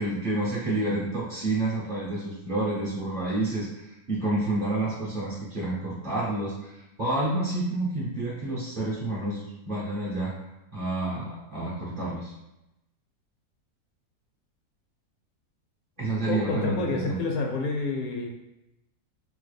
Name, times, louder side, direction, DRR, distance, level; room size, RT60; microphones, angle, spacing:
voice 1, 0.0-10.3 10.7-12.3 16.0-17.2, right 2 dB, 50° right, -7 dB, 0.7 m, -29 dB
voice 2, 16.3-18.3, left 3 dB, 75° left, 1 dB, 1.0 m, -28 dB
3.7 x 2.2 x 3.1 m, 0.91 s
omnidirectional pair, 1.6 m